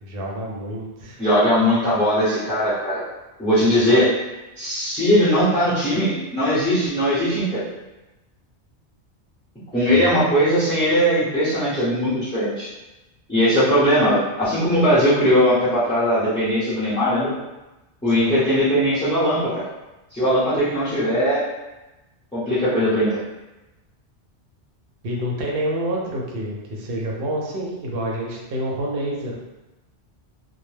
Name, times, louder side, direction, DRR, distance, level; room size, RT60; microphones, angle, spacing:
voice 1, 0.0-1.2 9.9-10.1 18.1-18.4 25.0-29.3, right 1 dB, 60° right, -2 dB, 0.8 m, -28 dB
voice 2, 1.2-3.0 3.4-4.1 4.6-7.6 9.7-12.7 13.3-17.3 18.0-19.6 20.1-21.4 22.3-23.2, equal, 5° left, -14 dB, 0.8 m, -19 dB
2.2 x 2.1 x 3.2 m, 1.0 s
omnidirectional pair, 1.2 m